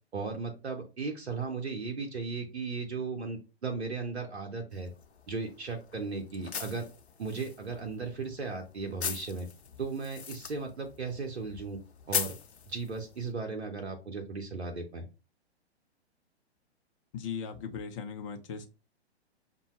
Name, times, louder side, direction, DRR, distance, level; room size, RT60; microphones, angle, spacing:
voice 1, 0.1-4.9 5.3-6.9 7.2-9.5 9.8-11.8 12.1-12.3 12.7-15.1, right 4 dB, 75° right, 3 dB, 0.8 m, -36 dB
sound 1, 4.7-13.3, left 6 dB, 75° left, 0.7 m, -41 dB
voice 2, 17.1-18.7, left 6 dB, 30° left, 5 dB, 0.5 m, -38 dB
5.3 x 2.2 x 3.0 m, 0.31 s
figure-of-eight pair, 115°, 33 cm